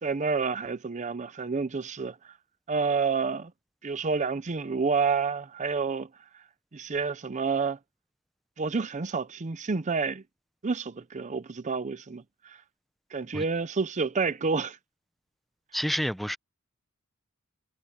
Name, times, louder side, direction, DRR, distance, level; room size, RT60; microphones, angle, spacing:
voice 1, 0.0-2.3 2.7-3.5 3.8-6.1 6.3-6.4 6.7-7.8 8.6-10.2 10.6-12.6 13.1-14.8, right 4 dB, 35° right, 0.6 m, -29 dB
voice 2, 15.7-16.4, equal, ahead, 0.7 m, -29 dB
head